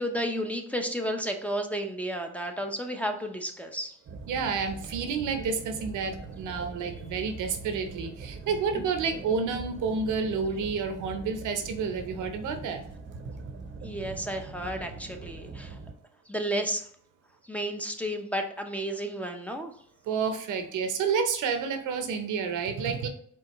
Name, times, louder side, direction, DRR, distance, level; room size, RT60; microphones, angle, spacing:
voice 1, 0.0-3.9 13.8-15.8 16.3-16.8 17.5-19.7, equal, 5° left, 4 dB, 0.6 m, -32 dB
sound 1, 4.1-15.9, right 4 dB, 40° right, 0.7 m, -42 dB
voice 2, 4.3-12.8 20.0-23.1, right 5 dB, 80° right, 7 dB, 0.8 m, -30 dB
4.7 x 3.6 x 3.0 m, 0.63 s
cardioid pair, 90°, 30 cm